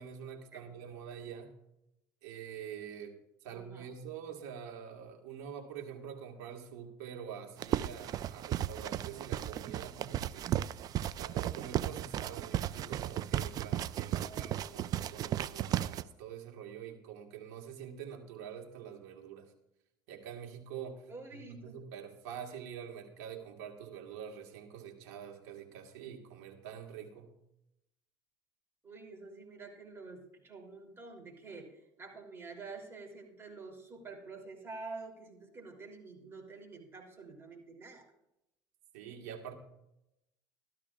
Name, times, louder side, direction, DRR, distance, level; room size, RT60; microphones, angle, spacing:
voice 1, 0.0-1.5 2.2-10.6 11.2-19.5 20.1-27.3 38.9-39.6, right 8 dB, 85° right, 3 dB, 1.7 m, -46 dB
voice 2, 3.5-3.9 14.1-15.0 21.1-21.7 28.8-38.0, right 3 dB, 25° right, 1 dB, 3.2 m, -48 dB
sound 1, 7.6-16.0, right 11 dB, 45° right, 0.4 m, -35 dB
13.5 x 12.5 x 2.4 m, 0.86 s
supercardioid pair, 100°, 9 cm